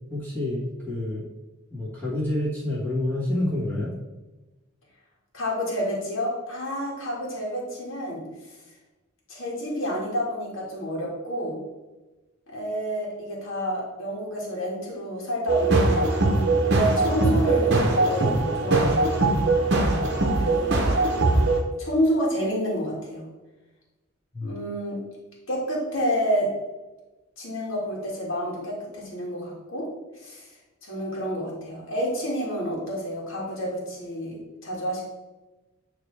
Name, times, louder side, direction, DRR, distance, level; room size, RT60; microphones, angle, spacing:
voice 1, 0.1-1.3 1.7-4.0 20.0-20.3 24.3-24.5, left 1 dB, 10° left, -9 dB, 1.6 m, -28 dB
voice 2, 5.3-8.2 9.3-11.6 12.5-16.2 16.6-19.1 20.4-20.8 21.8-23.3 24.4-25.0 25.5-26.5 27.4-29.9 30.2-30.5 30.8-34.4 34.6-35.0, equal, 65° left, -4 dB, 1.9 m, -29 dB
sound 1, 15.5-21.6, right 2 dB, 50° right, 0.8 m, -21 dB
8.7 x 3.3 x 3.3 m, 1.1 s
head